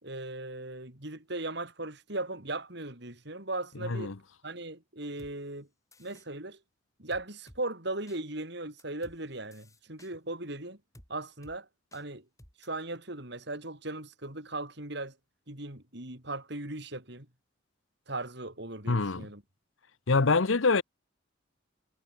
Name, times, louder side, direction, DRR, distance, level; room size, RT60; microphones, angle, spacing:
voice 1, 0.0-4.1 4.4-5.7 6.0-6.6 7.0-10.8 11.1-11.7 11.9-12.2 12.6-15.2 15.5-17.3 18.1-19.4, right 2 dB, 60° right, 4.6 m, -38 dB
voice 2, 3.8-4.1 18.9-19.3 20.1-20.8, left 4 dB, 80° left, 1.0 m, -25 dB
sound 1, 5.2-5.3 5.9-6.3 7.1-7.6 8.1-8.2 8.8-9.2 9.5-10.1 10.9-11.1 11.4-11.6 11.9-12.0 12.4-12.7, left 1 dB, 15° left, 4.1 m, -54 dB
head